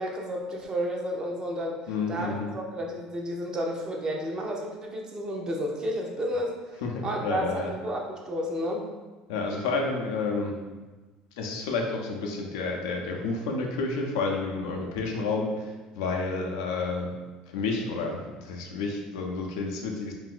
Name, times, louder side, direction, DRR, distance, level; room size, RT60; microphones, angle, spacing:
voice 1, 0.0-1.8 2.1-6.5 7.0-8.9, equal, 30° right, 0 dB, 0.6 m, -31 dB
voice 2, 1.9-2.5 6.8-7.7 9.3-10.6 11.4-17.1 17.5-20.1, left 3 dB, 90° left, 1 dB, 0.5 m, -30 dB
2.6 x 2.4 x 3.7 m, 1.2 s
supercardioid pair, 90°, 2 cm